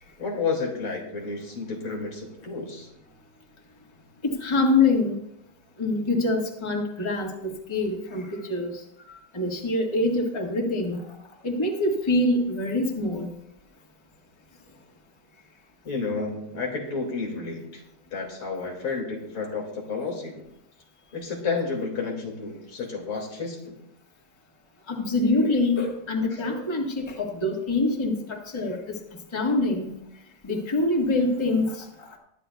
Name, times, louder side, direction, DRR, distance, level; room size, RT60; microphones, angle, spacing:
voice 1, 0.2-2.9 15.8-17.8 18.1-20.4 21.1-23.7 26.3-26.4, left 4 dB, 85° left, 0 dB, 3.2 m, -31 dB
voice 2, 4.2-5.1 5.8-8.7 9.3-11.0 11.4-13.3 24.9-29.0 29.3-30.0 30.4-31.8, left 2 dB, 15° left, 0 dB, 1.5 m, -25 dB
21.5 x 9.9 x 2.3 m, 0.78 s
omnidirectional pair, 2.2 m